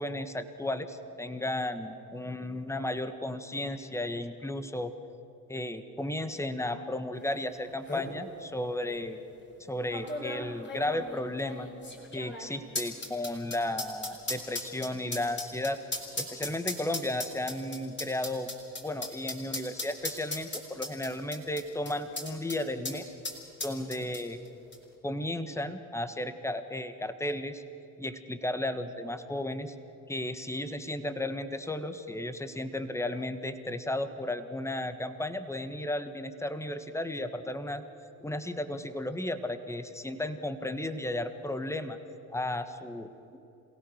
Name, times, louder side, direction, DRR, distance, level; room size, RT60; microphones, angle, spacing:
voice 1, 0.0-4.9 5.5-9.2 9.6-11.7 12.1-15.8 16.2-18.5 18.8-23.1 23.6-24.4 25.0-27.6 28.0-29.7 30.1-37.9 38.2-42.0 42.3-43.4, left 1 dB, 5° left, 10 dB, 1.6 m, -34 dB
sound 1, 7.3-7.4 7.7-8.1 8.9-9.0 9.9-22.6 22.8-23.0 23.2-24.5 24.7-24.8, left 2 dB, 25° left, 4.7 m, -37 dB
27.5 x 17.0 x 6.6 m, 2.9 s
supercardioid pair, 65°, 40 cm